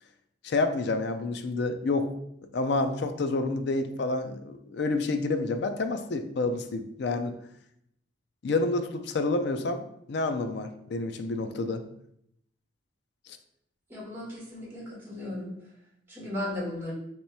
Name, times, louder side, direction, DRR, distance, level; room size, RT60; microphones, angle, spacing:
voice 1, 0.4-2.1 2.5-7.3 8.4-11.8, left 3 dB, 65° left, 8 dB, 0.4 m, -29 dB
voice 2, 13.9-15.5 16.1-16.9, left 1 dB, 10° right, -6 dB, 1.4 m, -36 dB
3.1 x 3.0 x 4.5 m, 0.75 s
head